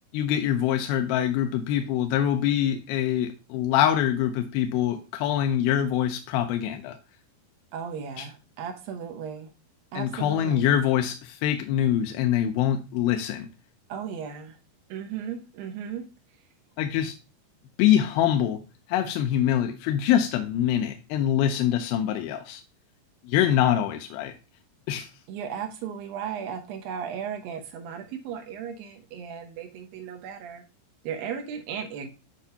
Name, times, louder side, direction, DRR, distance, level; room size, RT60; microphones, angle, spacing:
voice 1, 0.1-7.0 8.2-8.3 9.9-13.5 16.8-17.1 17.8-18.6 18.9-22.6 23.2-24.3 24.9-25.1, left 10 dB, 85° left, 5 dB, 2.4 m, -24 dB
voice 2, 7.7-9.5 9.9-10.7 13.9-14.6 14.9-16.0 25.3-30.6 31.0-32.1, right 7 dB, 80° right, 6 dB, 2.6 m, -36 dB
8.2 x 4.4 x 2.8 m, 0.30 s
omnidirectional pair, 4.2 m